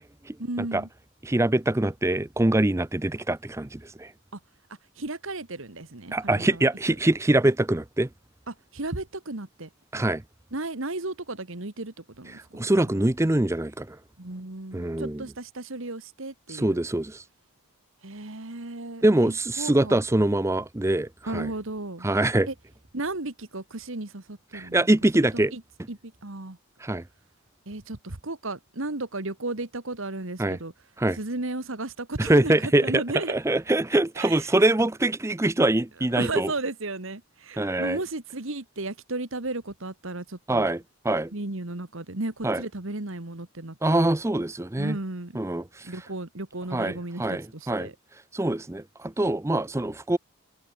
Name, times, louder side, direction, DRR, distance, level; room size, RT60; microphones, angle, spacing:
voice 1, 0.4-0.9 4.3-4.4 5.0-6.7 8.5-9.7 10.5-13.1 14.2-16.8 18.0-20.0 21.3-22.1 22.5-22.6 22.9-24.9 25.1-25.6 25.9-26.6 27.7-30.7 31.1-33.4 34.2-34.6 36.2-40.7 41.3-44.1 44.8-45.4 45.8-48.0, right 2 dB, 60° right, 1.8 m, -34 dB
voice 2, 1.2-4.1 6.1-8.1 9.9-10.2 12.5-14.0 14.7-15.2 16.5-17.2 19.0-21.5 22.0-22.5 24.5-25.5 26.8-27.0 30.4-30.6 31.0-31.2 32.2-33.0 33.3-36.5 37.6-38.0 40.5-41.3 42.4-42.6 43.8-45.0 45.4-45.9 46.7-47.9 48.3-50.2, right 1 dB, 15° right, 0.5 m, -24 dB
head